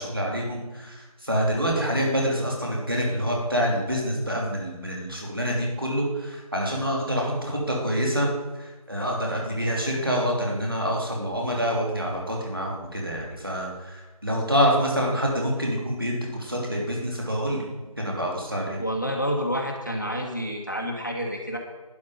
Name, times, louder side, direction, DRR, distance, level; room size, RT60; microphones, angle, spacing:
voice 1, 0.0-8.3 8.6-17.7 18.0-18.8, equal, 40° right, -2 dB, 3.1 m, -26 dB
voice 2, 18.8-21.6, equal, 30° left, 1 dB, 1.5 m, -28 dB
12.0 x 10.5 x 5.3 m, 1.2 s
figure-of-eight pair, 180°, 19 cm